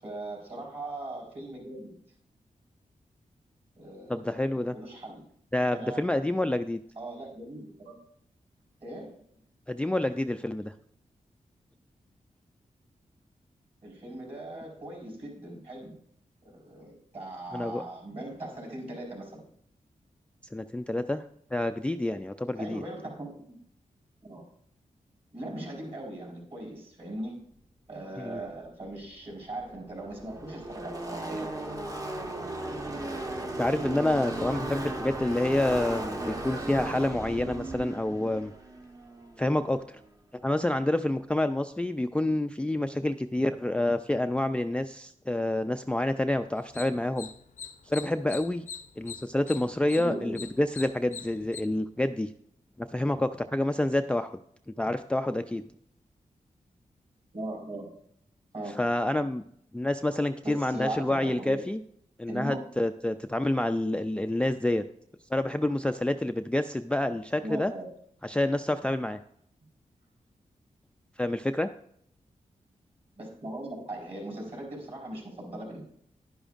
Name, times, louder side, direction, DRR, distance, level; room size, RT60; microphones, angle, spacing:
voice 1, 0.0-2.0 3.8-5.3 5.7-6.0 7.0-8.0 8.8-9.2 13.8-16.0 16.4-19.5 22.6-23.6 24.2-24.4 25.3-27.4 27.9-31.5 50.0-50.4 57.3-57.9 58.5-58.8 60.4-61.6 62.3-62.6 67.4-67.9 73.2-75.8, right 1 dB, 45° right, -2 dB, 4.5 m, -39 dB
voice 2, 4.1-4.8 5.5-6.8 9.7-10.7 17.5-17.8 20.5-21.2 21.5-22.8 28.2-28.4 33.6-38.5 39.4-40.0 40.4-47.3 47.9-48.7 49.0-52.3 52.8-54.4 54.8-55.6 58.8-59.4 59.7-61.8 62.2-64.8 65.3-67.7 68.2-69.2 71.2-71.7, left 1 dB, 10° left, 8 dB, 0.3 m, -28 dB
Car passing by / Race car auto racing, 29.4-39.9, right 2 dB, 25° right, 1.0 m, -36 dB
Sound of a squirrel chirping in Bengaluru, 46.6-51.6, left 6 dB, 65° left, 0.6 m, -44 dB
11.0 x 10.0 x 2.5 m, 0.68 s
wide cardioid pair, 95°, 14 cm